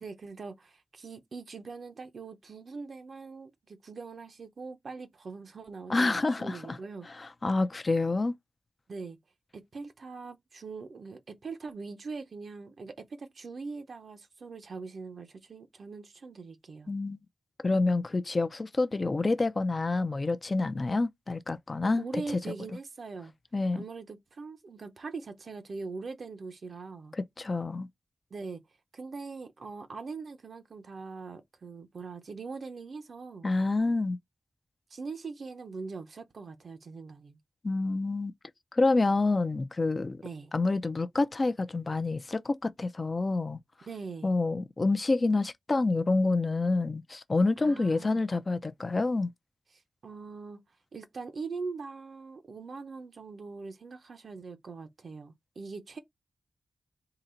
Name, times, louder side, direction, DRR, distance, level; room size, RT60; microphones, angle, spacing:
voice 1, 0.0-7.1 8.9-9.2 9.5-16.9 22.0-23.3 23.7-27.2 28.3-28.6 28.9-33.5 34.9-37.4 40.2-40.5 43.9-44.3 47.6-48.2 50.0-50.6 50.9-56.0, right 4 dB, 50° right, 0.7 m, -42 dB
voice 2, 5.9-6.8 7.2-8.3 16.9-17.2 17.6-22.4 23.5-23.8 27.2-27.9 33.4-34.2 37.6-38.3 38.7-40.2 40.5-43.6 44.2-49.3, left 3 dB, 30° left, 0.4 m, -28 dB
3.8 x 2.8 x 4.3 m
wide cardioid pair, 165°, 0 cm